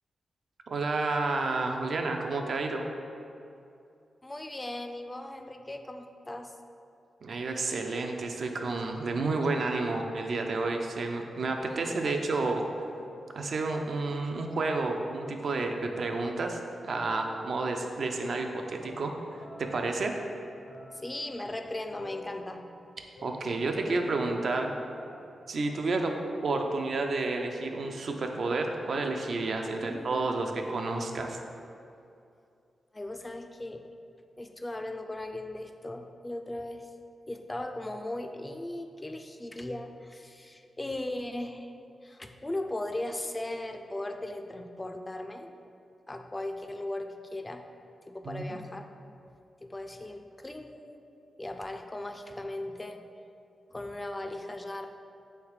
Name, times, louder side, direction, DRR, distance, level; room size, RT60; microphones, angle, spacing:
voice 1, 0.7-2.9 7.2-12.7 13.3-19.1 19.6-20.2 23.2-24.7 25.5-26.1 26.4-31.4 48.3-48.6, right 3 dB, 65° right, 3 dB, 0.4 m, -30 dB
voice 2, 4.2-6.5 11.7-12.2 20.9-22.6 29.8-30.5 32.9-33.8 34.4-36.9 37.3-41.7 42.0-45.5 46.1-47.7 48.0-48.8 49.6-51.0 51.4-53.0 53.7-54.9, left 1 dB, 20° left, 6 dB, 0.3 m, -38 dB
sound 1, 13.0-15.3 15.7-25.4, left 1 dB, 90° left, 0.8 m, -50 dB
3.3 x 3.2 x 4.7 m, 2.6 s
cardioid pair, 70°, 0 cm